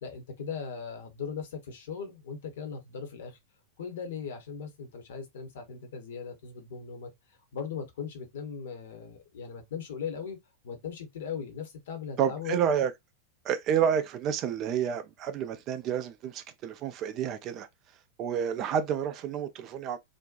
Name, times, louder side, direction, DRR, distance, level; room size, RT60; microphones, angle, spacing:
voice 1, 0.0-3.4 3.8-7.1 7.5-10.4 10.6-12.7, left 6 dB, 60° left, 0.8 m, -38 dB
voice 2, 12.2-12.9 13.4-17.7 18.2-20.0, right 8 dB, 35° right, 0.4 m, -29 dB
2.6 x 2.1 x 2.3 m
figure-of-eight pair, 90°, 0 cm